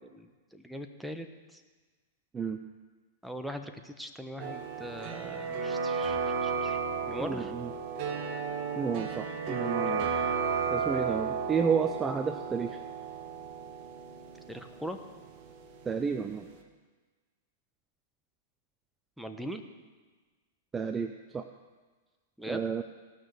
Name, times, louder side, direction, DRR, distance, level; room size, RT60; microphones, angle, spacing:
voice 1, 0.1-1.3 1.5-1.6 3.2-6.8 7.1-7.5 9.8-10.0 14.5-15.0 19.2-19.6 22.4-22.6, equal, ahead, 6 dB, 1.0 m, -40 dB
sound 1, 4.4-16.1 16.4-16.5, right 6 dB, 45° right, 1.5 m, -33 dB
voice 2, 7.2-7.7 8.8-10.1 10.7-12.8 15.9-16.5 20.7-21.4 22.5-22.8, right 6 dB, 15° right, 8 dB, 0.6 m, -31 dB
17.0 x 6.2 x 6.9 m, 1.4 s
hypercardioid pair, 110°, 0 cm